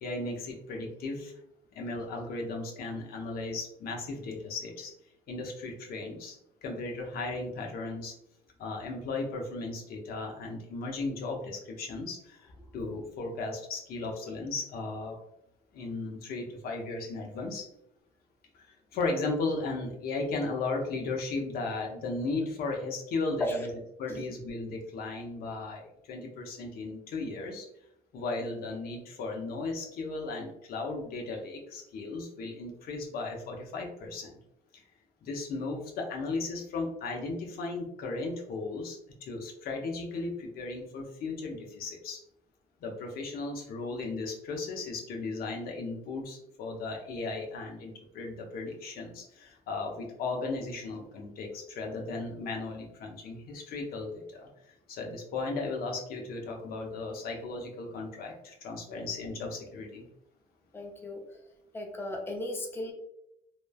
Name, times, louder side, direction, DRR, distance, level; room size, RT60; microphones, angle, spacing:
voice 1, 0.0-1.3 1.7-4.9 5.3-8.1 8.6-15.2 15.7-17.7 18.5-23.7 24.0-27.7 28.1-34.4 34.7-34.8 35.2-42.2 42.8-54.5 54.9-60.1, left 3 dB, 60° left, 1 dB, 0.7 m, -36 dB
voice 2, 60.7-61.2 61.7-62.9, left 1 dB, 15° left, 1 dB, 0.5 m, -35 dB
3.0 x 2.0 x 2.2 m, 0.79 s
cardioid pair, 110°, 17 cm